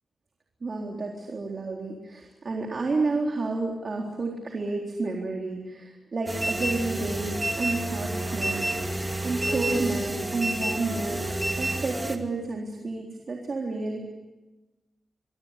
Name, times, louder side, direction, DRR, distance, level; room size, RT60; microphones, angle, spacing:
voice 1, 0.6-11.3 11.6-14.0, right 3 dB, 50° right, 0 dB, 3.9 m, -31 dB
sound 1, 6.3-12.2, right 1 dB, 15° right, 2.6 m, -29 dB
25.5 x 23.5 x 8.4 m, 1.1 s
wide cardioid pair, 110°, 0 cm